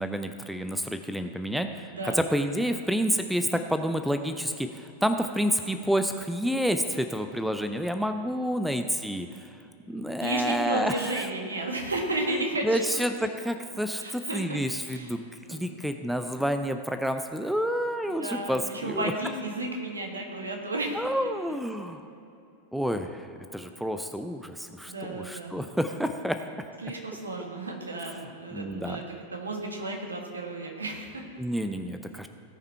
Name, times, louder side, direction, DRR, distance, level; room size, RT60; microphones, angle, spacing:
voice 1, 0.0-9.5 9.9-11.3 12.6-15.2 15.5-19.1 20.9-22.0 22.7-23.3 23.5-26.4 28.5-29.0 31.4-32.3, equal, ahead, 7 dB, 0.5 m, -29 dB
voice 2, 1.9-2.3 10.2-12.8 14.0-14.6 14.9-15.1 15.5-15.6 18.1-21.1 24.8-25.6 26.8-29.0 29.3-31.2, right 2 dB, 75° right, 1 dB, 1.7 m, -33 dB
17.0 x 5.7 x 4.6 m, 2.7 s
figure-of-eight pair, 90°, 0 cm